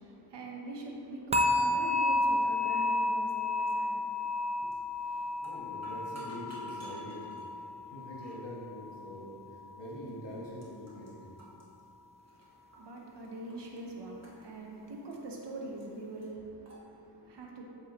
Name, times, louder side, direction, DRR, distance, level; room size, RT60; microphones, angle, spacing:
voice 1, 0.0-5.3 12.2-17.6, right 2 dB, 80° right, -1 dB, 0.9 m, -44 dB
sound 1, 1.3-8.4 8.7-9.1 9.6-9.7, left 2 dB, 15° right, 0.4 m, -31 dB
sound 2, 4.7-5.0 5.3-7.5 8.2-8.4 9.1-9.2 10.1-10.2 10.4-11.1 11.4-13.0 13.2-13.8 14.2-15.4 15.8-15.9 16.2-16.3 16.6-16.8, right 1 dB, 40° right, 1.3 m, -51 dB
voice 2, 5.0-7.3 7.9-11.2, equal, 85° left, -6 dB, 1.4 m, -44 dB
7.3 x 4.9 x 2.9 m, 2.7 s
wide cardioid pair, 75°, 42 cm